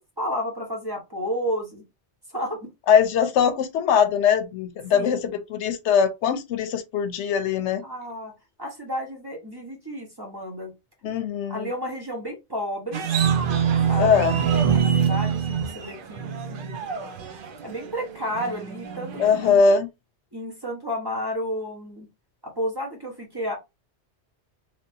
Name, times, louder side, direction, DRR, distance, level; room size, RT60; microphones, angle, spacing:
voice 1, 0.0-1.8 2.3-2.7 4.9-5.3 7.8-8.3 8.6-10.7 11.5-13.0 13.9-14.2 14.7-16.8 17.6-19.6 20.3-22.1 22.5-23.5, equal, 20° right, 0.9 m, -32 dB
voice 2, 2.9-7.8 11.0-11.7 14.0-14.4 19.2-19.9, left 6 dB, 80° left, 0.9 m, -21 dB
sound 1, 12.9-19.6, right 7 dB, 60° right, 0.7 m, -25 dB
3.0 x 2.7 x 2.6 m
omnidirectional pair, 1.2 m